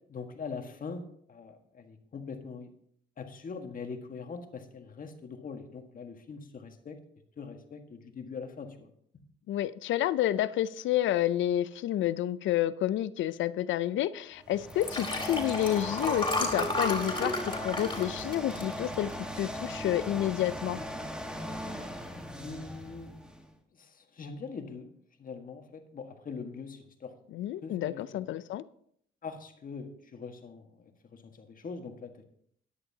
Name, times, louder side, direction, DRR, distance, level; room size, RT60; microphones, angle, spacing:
voice 1, 0.1-2.7 3.2-7.0 7.4-8.9 9.1-9.2 22.4-23.1 23.7-24.9 25.2-27.1 27.6-28.0 29.2-32.2, left 5 dB, 45° left, 1.6 m, -42 dB
voice 2, 9.5-17.4 17.6-19.1 19.4-20.8 27.3-28.6, left 13 dB, 75° left, 0.5 m, -29 dB
sound 1, 14.4-23.5, equal, 5° right, 1.4 m, -39 dB
Liquid, 14.7-19.3 19.8-20.1 20.3-20.4, left 1 dB, 25° left, 3.1 m, -32 dB
14.0 x 9.8 x 2.8 m
cardioid pair, 90°, 20 cm